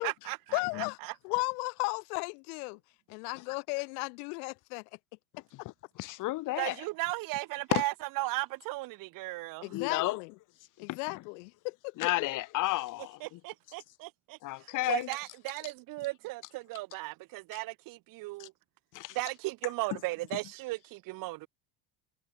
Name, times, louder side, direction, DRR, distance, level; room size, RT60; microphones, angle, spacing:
voice 1, 0.0-1.1 6.6-9.7 13.2-18.5 19.1-21.5, right 21 dB, 50° right, 1.3 m, -36 dB
voice 2, 0.5-1.0 1.2-2.8 3.1-4.8 9.6-10.3 10.8-12.1, left 34 dB, 85° left, 1.1 m, -35 dB
voice 3, 5.9-6.7 7.7-7.8 9.7-10.2 10.9-11.2 12.0-13.4 14.4-15.1 18.4-18.5 18.9-19.2, left 18 dB, 45° left, 1.5 m, -32 dB
cardioid pair, 170°, 44 cm